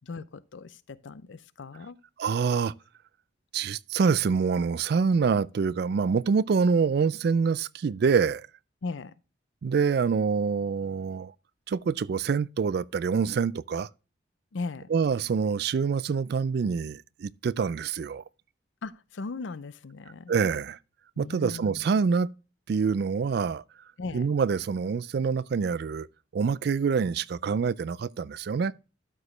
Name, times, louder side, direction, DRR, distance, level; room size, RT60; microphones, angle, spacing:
voice 1, 0.0-2.0 8.8-9.1 14.5-14.9 18.8-20.3 21.2-21.9 24.0-24.3, left 3 dB, 70° left, 0.5 m, -38 dB
voice 2, 2.2-2.7 3.5-8.5 9.6-11.3 11.7-13.9 14.9-18.2 20.3-20.8 21.2-22.3 22.7-23.6 24.1-26.1 26.3-28.7, right 5 dB, 55° right, 0.3 m, -26 dB
12.5 x 4.9 x 3.2 m
head